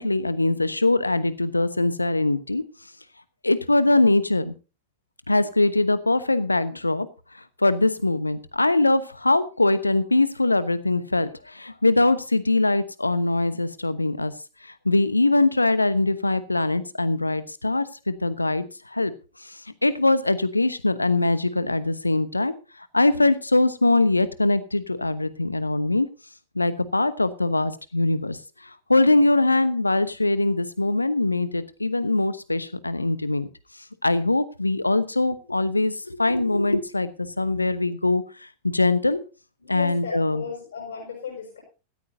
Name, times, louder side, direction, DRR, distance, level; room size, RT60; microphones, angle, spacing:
voice 1, 0.0-2.6 3.4-4.5 5.3-7.1 7.6-14.3 14.8-18.6 18.9-19.1 19.4-22.5 22.9-26.1 26.5-28.4 28.9-33.5 34.0-39.2 39.7-40.4, left 2 dB, 85° left, 14 dB, 1.0 m, -22 dB
voice 2, 39.6-41.6, left 6 dB, 65° left, -1 dB, 6.2 m, -35 dB
17.0 x 13.5 x 2.7 m, 0.32 s
figure-of-eight pair, 90°, 0 cm